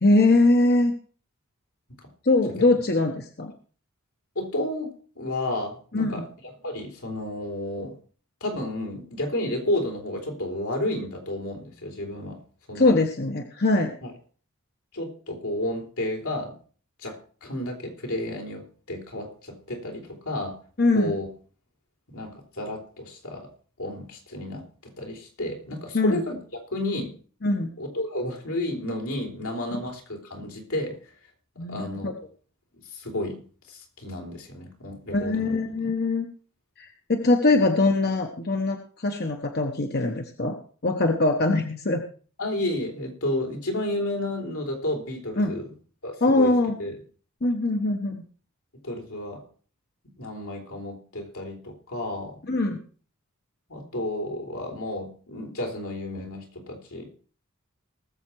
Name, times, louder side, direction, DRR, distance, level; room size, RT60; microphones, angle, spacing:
voice 1, 0.0-0.9 2.2-3.5 5.9-6.3 12.7-13.9 20.8-21.2 25.9-26.2 27.4-27.7 29.7-29.8 31.6-32.1 35.1-36.3 36.8-40.6 40.8-42.0 45.4-45.5 46.2-46.7 47.4-48.2 52.5-52.8, left 2 dB, 50° left, 4 dB, 1.1 m, -22 dB
voice 2, 4.4-7.9 8.4-12.4 12.7-13.0 14.0-14.1 14.9-16.5 17.0-20.6 20.9-21.3 22.1-23.5 23.8-26.4 26.7-27.1 27.8-31.0 31.7-32.2 32.9-33.4 33.7-35.6 42.4-45.7 46.0-46.5 46.8-46.9 48.8-49.4 50.2-52.4 53.7-57.2, left 1 dB, 85° left, 1 dB, 3.9 m, -32 dB
19.5 x 7.3 x 4.7 m, 0.42 s
head